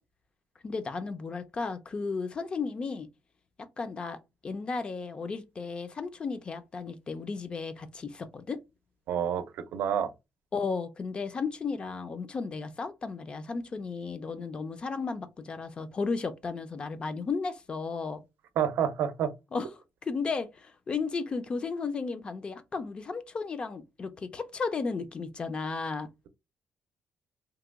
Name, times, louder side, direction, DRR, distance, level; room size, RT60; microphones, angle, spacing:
voice 1, 0.6-3.1 3.8-8.6 10.5-18.2 19.5-19.7 20.0-26.1, left 4 dB, 30° left, 0.4 m, -34 dB
voice 2, 9.1-9.4 9.7-10.1 18.6-19.3, right 9 dB, 80° right, 0.5 m, -28 dB
2.8 x 2.2 x 3.5 m
cardioid pair, 145°, 3 cm